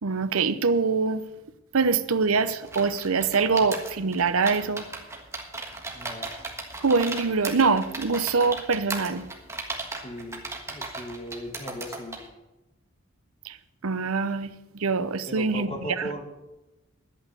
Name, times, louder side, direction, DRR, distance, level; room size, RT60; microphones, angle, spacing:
voice 1, 0.0-1.2 1.7-4.8 6.8-9.2 13.4-13.6 13.8-16.1, right 4 dB, 80° right, 0.8 m, -24 dB
sound 1, 2.6-12.3, right 3 dB, 15° right, 1.5 m, -36 dB
voice 2, 5.9-6.3 10.0-12.2 15.3-16.2, equal, 25° left, 1.8 m, -38 dB
11.0 x 8.6 x 8.1 m
head